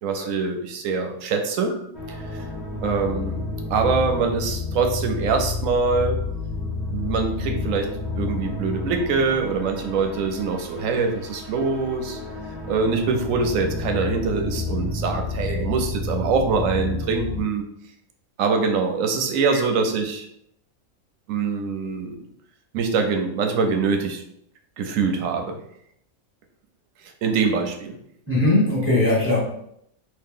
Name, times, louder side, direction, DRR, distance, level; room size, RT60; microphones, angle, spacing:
voice 1, 0.0-1.7 2.3-2.4 2.8-6.3 6.9-12.2 12.7-17.6 18.4-20.3 21.3-22.2 22.7-24.2 24.8-25.6 27.0-27.9, right 4 dB, 85° right, 4 dB, 1.0 m, -24 dB
sound 1, 1.9-17.4, left 3 dB, 55° left, 1.2 m, -30 dB
voice 2, 28.3-29.4, left 2 dB, 10° right, -6 dB, 1.0 m, -20 dB
2.9 x 2.8 x 3.6 m, 0.72 s
omnidirectional pair, 1.4 m